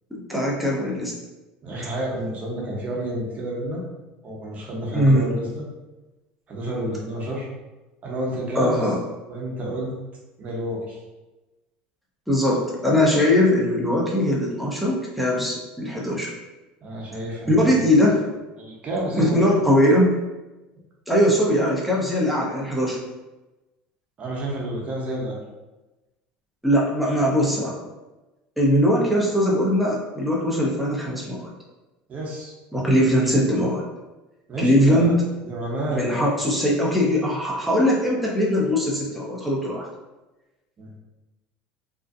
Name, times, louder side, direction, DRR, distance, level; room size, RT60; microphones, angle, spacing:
voice 1, 0.1-1.1 4.9-5.3 8.5-9.0 12.3-16.3 17.5-18.2 19.1-20.1 21.1-23.0 26.6-27.8 28.6-31.5 32.7-33.8 34.6-35.1 35.9-39.9, equal, ahead, -4 dB, 0.7 m, -20 dB
voice 2, 1.6-3.8 4.2-5.6 6.5-7.5 8.0-8.8 9.3-9.9 10.4-11.0 16.8-17.8 18.6-19.4 24.2-25.4 32.1-32.5 34.5-35.1 35.4-36.3 40.8-40.9, right 1 dB, 35° right, -3 dB, 0.9 m, -30 dB
2.5 x 2.1 x 2.5 m, 1.1 s
supercardioid pair, 100°, 4 cm